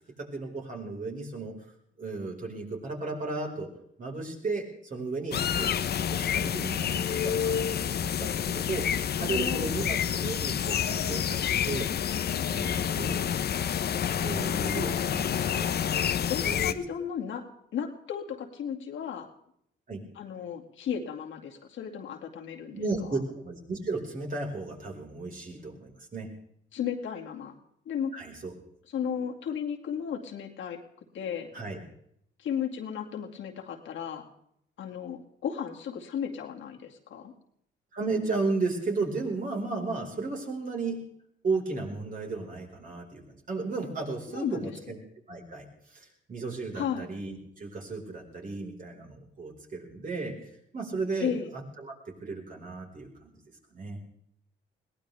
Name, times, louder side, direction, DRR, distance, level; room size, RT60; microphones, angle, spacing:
voice 1, 0.2-1.6 2.0-3.7 4.0-5.8 6.1-8.9 9.2-11.9 12.5-13.3 14.2-15.9 16.4-16.8 19.9-20.0 22.7-26.3 28.1-28.5 31.5-31.8 37.9-41.0 41.4-45.0 45.3-50.4 50.7-53.4 53.7-54.0, right 3 dB, 45° right, 0 dB, 4.9 m, -34 dB
sound 1, 5.3-16.7, left 9 dB, 55° left, 0.8 m, -28 dB
voice 2, 9.2-9.9 14.7-14.9 16.3-17.5 17.7-19.3 20.2-22.8 26.7-27.5 27.9-28.1 28.9-30.8 31.1-31.5 32.4-34.3 34.8-37.3 44.3-44.7 46.7-47.1 51.2-51.5, left 8 dB, 75° left, 1 dB, 2.4 m, -34 dB
21.5 x 18.0 x 3.5 m, 0.71 s
cardioid pair, 90°, 20 cm